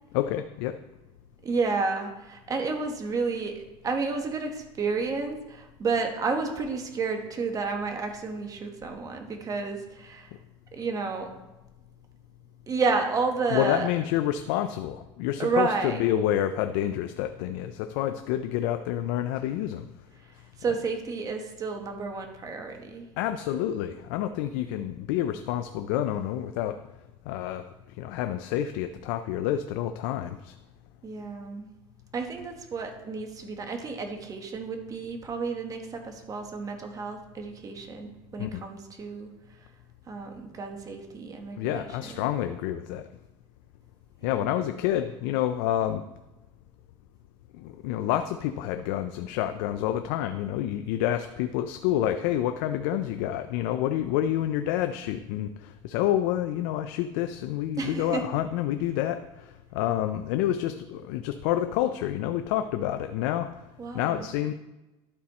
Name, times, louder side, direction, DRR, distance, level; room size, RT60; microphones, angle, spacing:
voice 1, 0.1-0.8 13.5-19.9 23.2-26.8 27.3-30.5 38.4-38.6 41.6-43.1 44.2-46.1 47.5-63.6 63.9-64.5, left 12 dB, 85° left, 9 dB, 0.4 m, -28 dB
voice 2, 1.4-10.3 10.7-11.3 12.7-13.9 15.4-16.0 20.6-23.1 31.0-31.7 32.1-39.3 40.1-42.3 57.8-58.3 63.8-64.3, right 4 dB, 30° right, 4 dB, 1.3 m, -31 dB
12.0 x 4.2 x 4.2 m, 1.0 s
cardioid pair, 115°, 11 cm